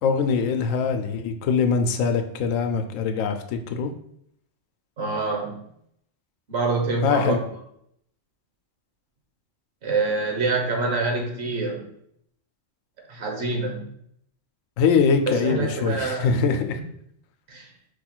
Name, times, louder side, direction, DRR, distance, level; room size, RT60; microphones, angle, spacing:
voice 1, 0.0-3.9 7.0-7.4 14.8-16.8, left 5 dB, 85° left, 7 dB, 1.0 m, -23 dB
voice 2, 5.0-5.6 6.5-7.3 9.8-11.9 13.1-13.9 15.3-16.4 17.5-17.7, right 3 dB, 60° right, 1 dB, 1.2 m, -26 dB
4.8 x 2.3 x 4.3 m, 0.72 s
omnidirectional pair, 1.3 m